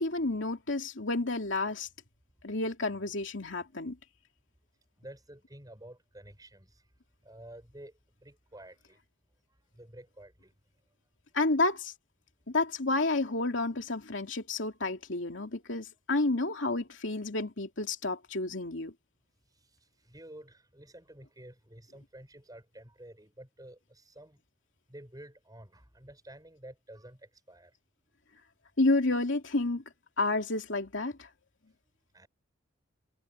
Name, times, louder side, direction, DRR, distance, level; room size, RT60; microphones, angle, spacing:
voice 1, 0.0-1.9 2.4-4.0 11.3-11.9 12.5-18.9 28.8-29.8 30.2-31.1, left 2 dB, 70° left, 2.8 m, -30 dB
voice 2, 5.0-6.8 7.2-9.0 9.7-10.5 20.0-24.4 24.9-27.7 32.1-32.3, right 1 dB, 20° right, 6.8 m, -51 dB
head